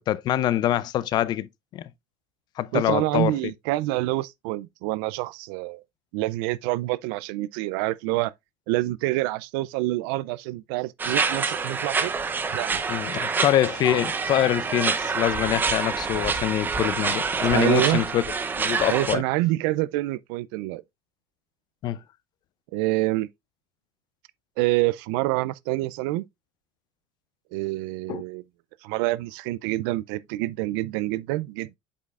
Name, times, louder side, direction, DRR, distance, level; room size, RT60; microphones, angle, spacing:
voice 1, 0.1-1.9 2.6-3.3 12.9-18.2 18.5-19.2 21.8-22.0 28.1-28.2, left 12 dB, 35° left, 0.4 m, -25 dB
voice 2, 2.7-5.8 6.1-8.3 8.7-12.1 12.5-12.8 17.5-18.0 18.9-20.8 22.7-23.3 24.6-26.2 27.5-28.4 28.8-31.8, right 18 dB, 70° right, 0.4 m, -27 dB
sound 1, 11.0-19.2, right 5 dB, 15° right, 0.6 m, -27 dB
8.2 x 5.4 x 2.4 m
cardioid pair, 155°, 13 cm